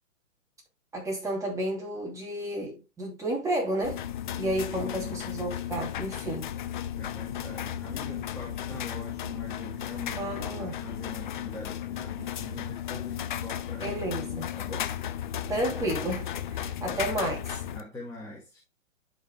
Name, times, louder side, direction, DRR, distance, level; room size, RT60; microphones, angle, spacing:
voice 1, 0.9-4.0 4.4-6.5 10.2-10.8 13.8-14.5 15.5-17.6, right 1 dB, 10° right, 2.8 m, -31 dB
sound 1, 3.8-17.8, left 10 dB, 40° left, 0.5 m, -35 dB
voice 2, 4.8-5.3 6.9-14.9 16.9-17.0 17.7-18.6, left 1 dB, 5° left, 2.0 m, -43 dB
12.5 x 5.5 x 2.2 m
hypercardioid pair, 130°, 40 cm